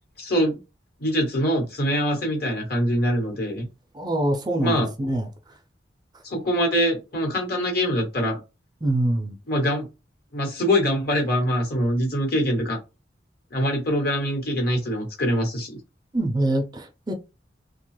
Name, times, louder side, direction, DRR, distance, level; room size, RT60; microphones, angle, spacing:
voice 1, 0.2-0.6 1.0-3.7 4.6-4.9 6.2-8.4 9.5-9.9 10.3-12.8 13.5-15.8, equal, 55° left, 1.1 m, -24 dB
voice 2, 3.9-5.3 8.8-9.4 16.1-17.1, right 1 dB, 25° right, 0.4 m, -24 dB
2.8 x 2.2 x 3.1 m
head